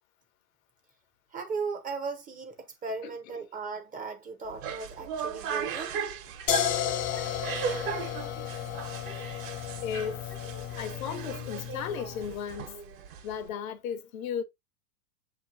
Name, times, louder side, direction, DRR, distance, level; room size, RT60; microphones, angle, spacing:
voice 1, 1.3-6.0, right 4 dB, 20° right, 0.6 m, -37 dB
sound 1, 4.4-13.5, right 7 dB, 60° right, 1.2 m, -37 dB
sound 2, 6.5-12.3, left 11 dB, 35° left, 0.4 m, -33 dB
voice 2, 9.8-10.2 10.8-12.8 13.2-14.4, left 7 dB, 65° left, 0.8 m, -35 dB
6.9 x 3.0 x 2.5 m
hypercardioid pair, 100°, 45 cm